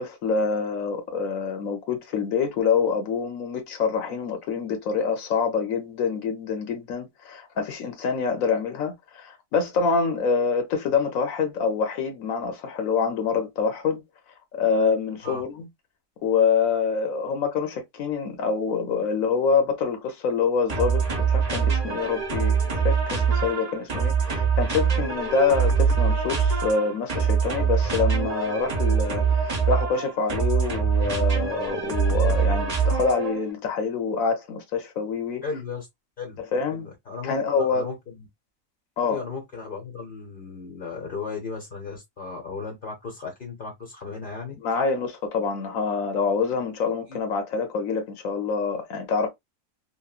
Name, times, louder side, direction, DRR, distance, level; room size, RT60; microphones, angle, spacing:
voice 1, 0.0-14.0 14.5-15.7 16.2-35.4 36.4-36.9 37.2-37.8 39.0-39.2 44.6-49.3, left 5 dB, 90° left, 1.2 m, -26 dB
sound 1, 20.7-33.5, right 6 dB, 35° right, 0.7 m, -23 dB
voice 2, 35.4-35.9 36.2-36.4 36.7-38.3 39.1-44.9 47.1-47.2, left 4 dB, 45° left, 0.9 m, -36 dB
3.0 x 2.6 x 2.3 m
omnidirectional pair, 1.4 m